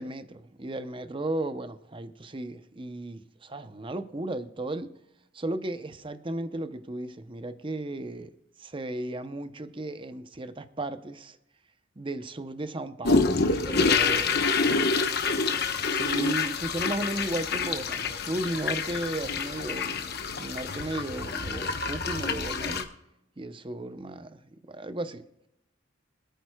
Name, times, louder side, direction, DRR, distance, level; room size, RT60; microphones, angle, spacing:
voice 1, 0.0-4.9 5.3-8.3 8.6-11.4 12.0-14.6 15.9-22.9 23.4-25.2, right 1 dB, 25° right, 0.7 m, -35 dB
sound 1, 13.0-22.8, left 4 dB, 55° left, 1.1 m, -27 dB
26.0 x 9.1 x 2.3 m
head